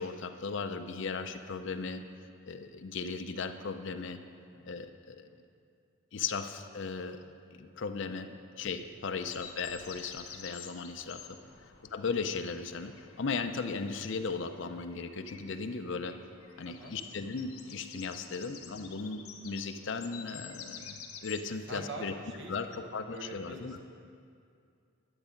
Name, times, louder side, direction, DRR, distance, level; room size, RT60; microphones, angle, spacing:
voice 1, 0.0-2.0 2.5-4.2 4.6-5.3 6.1-7.2 7.6-8.3 8.6-11.3 11.6-16.1 16.6-22.1 22.5-23.8, left 4 dB, 55° left, 8 dB, 0.5 m, -37 dB
sound 1, 9.2-21.7, left 7 dB, 80° left, 0.8 m, -50 dB
voice 2, 16.7-17.0 18.1-18.5 21.5-23.8, right 2 dB, 55° right, 2 dB, 1.1 m, -46 dB
11.0 x 7.0 x 5.1 m, 2.4 s
head